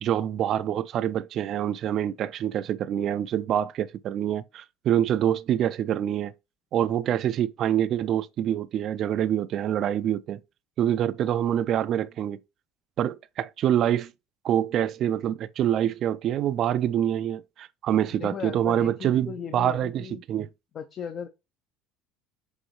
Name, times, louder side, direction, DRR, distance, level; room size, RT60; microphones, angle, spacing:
voice 1, 0.0-6.3 6.7-10.4 10.8-12.4 13.0-14.1 14.4-20.5, right 10 dB, 55° right, 0.3 m, -26 dB
voice 2, 18.1-20.2 20.7-21.3, left 7 dB, 45° left, 0.6 m, -37 dB
6.3 x 2.7 x 3.1 m
hypercardioid pair, 70°, 0 cm